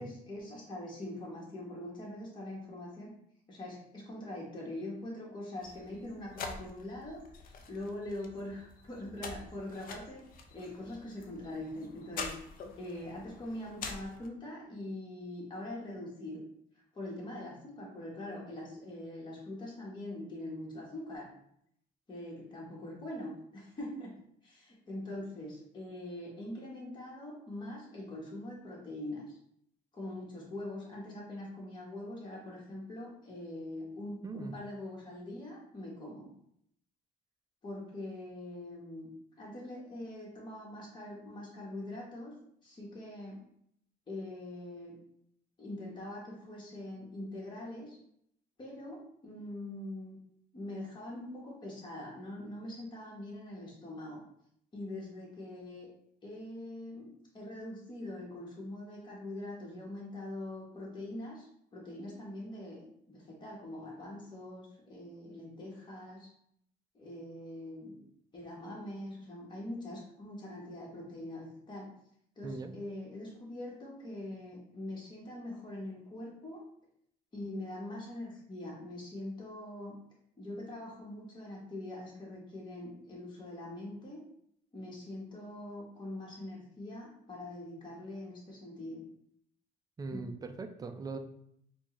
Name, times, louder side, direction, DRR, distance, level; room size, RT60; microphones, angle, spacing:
voice 1, 0.0-3.1 3.5-10.2 10.5-16.4 16.9-21.3 22.1-24.1 24.4-29.4 29.9-36.3 37.6-39.1 39.4-42.3 42.6-43.4 44.1-45.0 45.6-48.0 48.6-50.2 50.5-54.2 54.7-55.9 56.2-57.1 57.3-66.3 66.9-68.1 68.3-71.9 72.4-76.6 77.3-80.0 80.4-84.2 84.7-89.0 90.1-90.3, left 1 dB, 25° left, -4 dB, 1.2 m, -43 dB
sound 1, 5.6-14.3, left 4 dB, 55° left, 0.5 m, -46 dB
voice 2, 34.2-34.6 72.4-72.8 90.0-91.2, right 4 dB, 20° right, 7 dB, 0.4 m, -40 dB
4.4 x 2.3 x 3.1 m, 0.71 s
cardioid pair, 110°, 17 cm